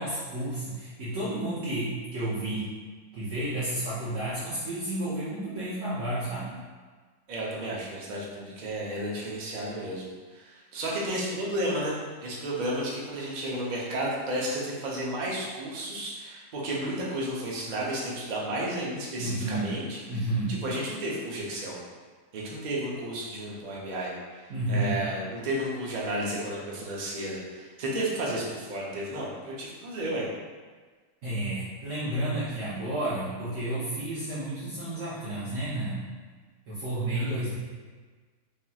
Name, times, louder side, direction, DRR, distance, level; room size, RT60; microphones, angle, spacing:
voice 1, 0.0-2.7 3.1-6.5 19.2-19.7 20.1-20.6 24.5-25.0 31.2-36.1 36.7-37.5, right 1 dB, 60° right, -11 dB, 1.0 m, -31 dB
voice 2, 7.3-10.0 10.3-20.0 20.5-21.8 22.3-30.2 37.1-37.4, right 1 dB, 90° right, -5 dB, 0.4 m, -32 dB
3.5 x 2.7 x 2.3 m, 1.4 s
omnidirectional pair, 1.7 m